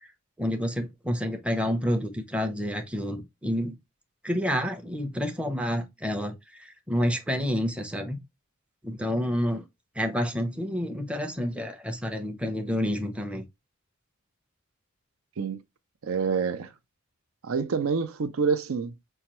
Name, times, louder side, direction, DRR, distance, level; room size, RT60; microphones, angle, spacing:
voice 1, 0.4-3.8 4.2-8.2 8.8-9.6 10.0-13.4, equal, 5° right, 0.6 m, -29 dB
voice 2, 16.0-16.7 17.4-18.9, right 5 dB, 80° right, 0.5 m, -27 dB
5.5 x 2.3 x 2.9 m
head